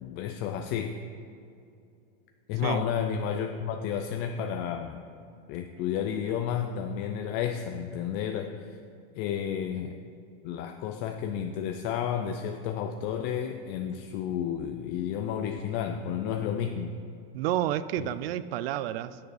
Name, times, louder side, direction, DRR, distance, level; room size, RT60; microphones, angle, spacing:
voice 1, 0.0-1.0 2.5-5.0 5.5-8.7 9.2-10.0 10.4-17.0 18.0-18.1, left 8 dB, 35° left, 5 dB, 0.4 m, -31 dB
voice 2, 17.3-19.2, right 12 dB, 75° right, 15 dB, 0.5 m, -30 dB
8.0 x 6.6 x 4.8 m, 2.5 s
supercardioid pair, 135°, 30 cm